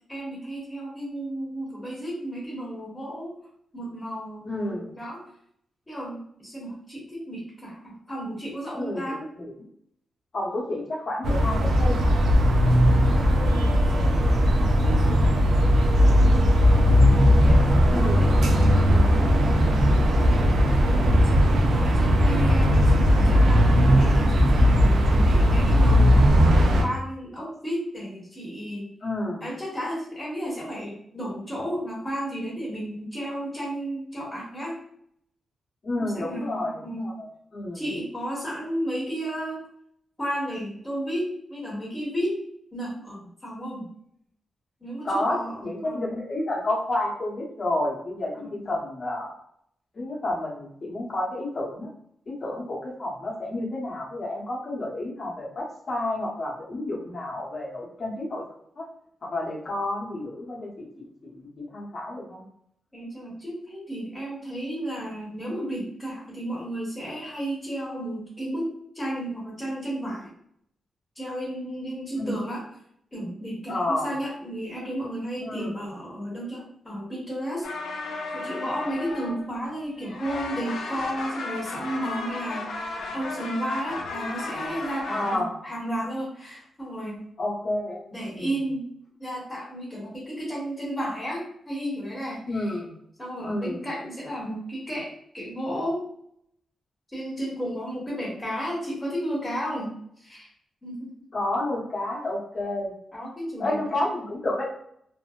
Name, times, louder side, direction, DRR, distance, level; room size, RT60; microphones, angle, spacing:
voice 1, 0.1-3.3 3.7-5.2 5.9-9.2 12.5-15.4 16.3-19.1 20.1-20.5 21.0-28.9 29.4-34.8 36.0-37.1 37.7-39.6 40.2-42.4 42.7-43.9 44.8-46.1 48.3-48.6 62.9-68.7 68.9-70.3 71.1-72.7 73.1-77.7 78.3-87.2 88.1-88.9 89.2-92.8 93.2-96.0 97.1-100.5 100.8-101.1 103.1-103.9, equal, 20° left, -6 dB, 1.0 m, -33 dB
voice 2, 4.4-4.9 8.8-9.0 9.4-9.7 10.3-12.1 17.9-18.3 18.8-19.2 29.0-29.4 35.8-37.3 37.5-37.8 45.0-49.4 49.9-51.9 52.3-58.4 58.8-58.9 59.2-62.4 72.2-72.4 73.7-74.1 75.4-75.7 85.1-85.6 87.4-88.5 92.5-92.9 93.4-93.8 101.3-102.9 103.6-104.7, left 1 dB, 45° left, -3 dB, 0.9 m, -30 dB
sound 1, 11.2-26.8, equal, 80° right, 0.4 m, -18 dB
sound 2, 77.6-79.7 80.0-85.4, left 3 dB, 90° left, 0.4 m, -34 dB
2.7 x 2.0 x 2.3 m, 0.68 s
cardioid pair, 85°, 0 cm